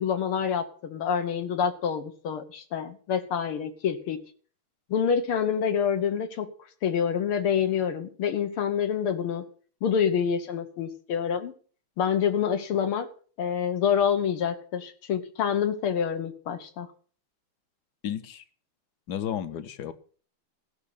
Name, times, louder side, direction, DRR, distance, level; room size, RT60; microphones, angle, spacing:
voice 1, 0.0-4.2 4.9-6.5 6.8-9.5 9.8-11.5 12.0-13.1 13.4-16.9, left 7 dB, 90° left, 8 dB, 2.2 m, -27 dB
voice 2, 18.0-18.4 19.1-19.9, left 9 dB, 60° left, 12 dB, 1.3 m, -32 dB
15.0 x 6.4 x 6.8 m, 0.43 s
omnidirectional pair, 2.3 m